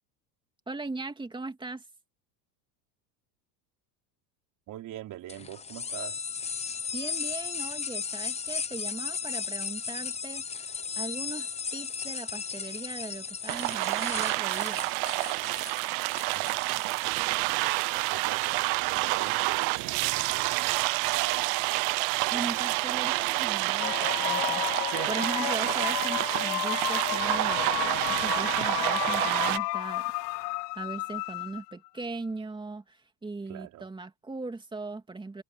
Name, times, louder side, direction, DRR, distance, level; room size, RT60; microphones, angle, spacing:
voice 1, 0.7-1.8 6.9-14.9 22.3-30.4 30.7-35.4, right 3 dB, 10° right, 2.9 m, -39 dB
voice 2, 4.7-6.2 16.3-16.8 17.5-22.8 26.0-26.2 33.4-33.9, right 13 dB, 40° right, 4.8 m, -44 dB
sound 1, 5.3-17.2, left 6 dB, 15° left, 0.9 m, -36 dB
sound 2, 13.5-29.6, right 25 dB, 60° right, 1.0 m, -28 dB
sound 3, 23.8-31.9, left 22 dB, 90° left, 0.6 m, -32 dB
supercardioid pair, 135°, 47 cm